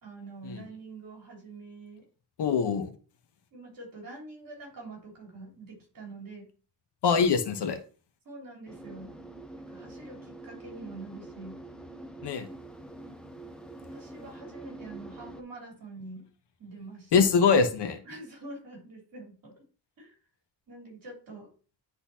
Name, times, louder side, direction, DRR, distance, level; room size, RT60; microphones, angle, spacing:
voice 1, 0.0-2.0 3.5-6.5 8.3-9.1 9.6-11.6 13.8-16.3 16.6-17.3 18.1-19.6 20.0-20.1 20.7-21.5, right 2 dB, 50° right, -1 dB, 3.4 m, -45 dB
voice 2, 2.4-2.9 7.0-7.8 12.2-12.5 17.1-18.0, left 5 dB, 70° left, 7 dB, 1.1 m, -23 dB
sound 1, 8.7-15.4, right 2 dB, ahead, 0.5 m, -45 dB
10.0 x 4.1 x 2.8 m, 0.38 s
wide cardioid pair, 170°, 42 cm